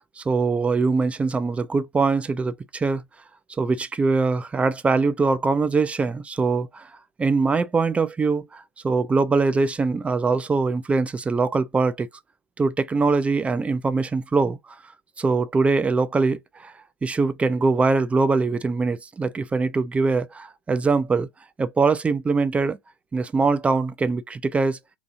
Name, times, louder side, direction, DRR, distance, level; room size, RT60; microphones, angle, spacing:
voice 1, 0.2-3.0 3.6-6.9 7.2-12.1 12.6-14.6 15.2-16.7 17.0-21.3 21.6-22.8 23.1-24.8, right 4 dB, 10° right, 0.3 m, -22 dB
2.8 x 2.6 x 2.5 m
hypercardioid pair, 100°, 13 cm